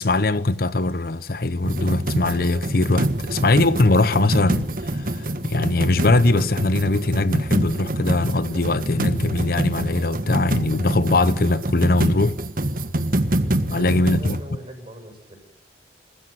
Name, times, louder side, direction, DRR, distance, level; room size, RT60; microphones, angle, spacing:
voice 1, 0.0-12.4 13.7-14.4, left 2 dB, 55° left, 0.9 m, -21 dB
sound 1, 1.6-14.4, right 1 dB, 50° right, 1.5 m, -26 dB
voice 2, 13.2-13.6 14.0-15.4, right 1 dB, 30° right, 7.9 m, -42 dB
27.5 x 15.5 x 9.1 m
head